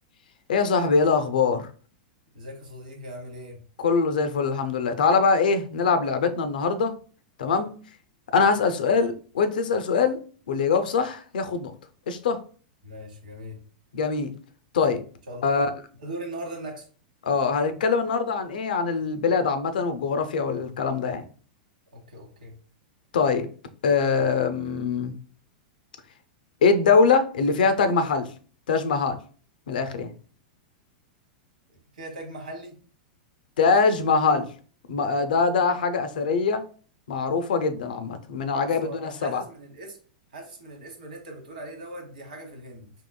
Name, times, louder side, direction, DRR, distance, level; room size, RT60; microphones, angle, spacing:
voice 1, 0.5-1.7 3.8-6.9 7.4-7.7 8.3-10.2 10.5-11.7 12.1-12.4 13.9-14.3 14.7-15.0 15.4-15.7 17.2-21.2 23.1-23.5 23.8-25.1 26.6-28.3 28.7-29.2 29.7-30.1 33.6-34.5 34.9-36.6 37.1-39.4, left 5 dB, 80° left, 9 dB, 0.5 m, -23 dB
voice 2, 2.3-3.6 12.8-13.6 15.3-15.7 16.0-16.9 21.9-22.5 31.9-32.7 38.6-40.0 40.3-42.9, right 1 dB, 80° right, 3 dB, 1.1 m, -39 dB
3.7 x 2.9 x 2.2 m, 0.41 s
hypercardioid pair, 110°, 5 cm